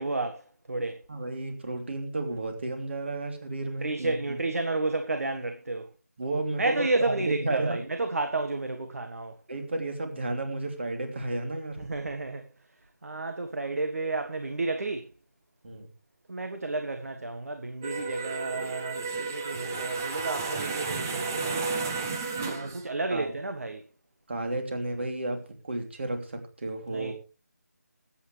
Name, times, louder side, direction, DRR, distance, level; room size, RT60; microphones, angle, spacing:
voice 1, 0.0-1.0 3.8-5.9 6.6-9.3 11.8-12.4 13.0-15.1 16.3-21.8 22.5-23.8 26.9-27.1, right 2 dB, 60° right, 1.5 m, -31 dB
voice 2, 1.1-4.4 6.2-7.8 9.5-11.8 15.6-15.9 22.6-22.8 23.1-23.3 24.3-27.1, right 2 dB, 40° right, 3.0 m, -32 dB
sound 1, 17.8-22.8, right 4 dB, 10° right, 0.6 m, -32 dB
21.5 x 8.7 x 3.3 m
figure-of-eight pair, 170°, 9 cm